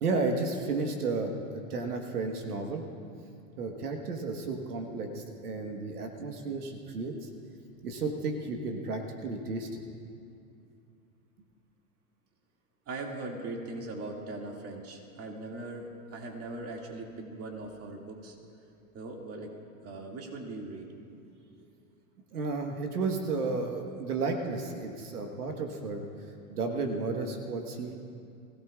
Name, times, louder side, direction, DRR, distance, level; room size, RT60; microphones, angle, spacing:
voice 1, 0.0-2.8 3.6-7.3 7.8-9.8 22.3-26.0 26.5-27.9, right 3 dB, 85° right, 3 dB, 1.5 m, -33 dB
voice 2, 12.9-18.4 18.9-19.5 19.8-20.9 21.6-21.7, right 2 dB, 30° right, 1 dB, 2.2 m, -40 dB
21.5 x 16.5 x 2.4 m, 2.6 s
hypercardioid pair, 95°, 44 cm